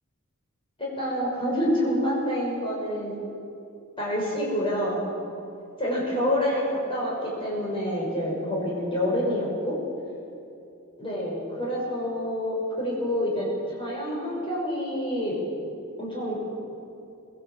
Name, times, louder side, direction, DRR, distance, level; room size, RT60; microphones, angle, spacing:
voice 1, 0.8-3.1 4.0-5.0 5.8-9.8 11.0-13.5 13.8-15.4 16.0-16.4, equal, 25° left, -5 dB, 6.2 m, -27 dB
21.0 x 17.5 x 7.6 m, 2.6 s
head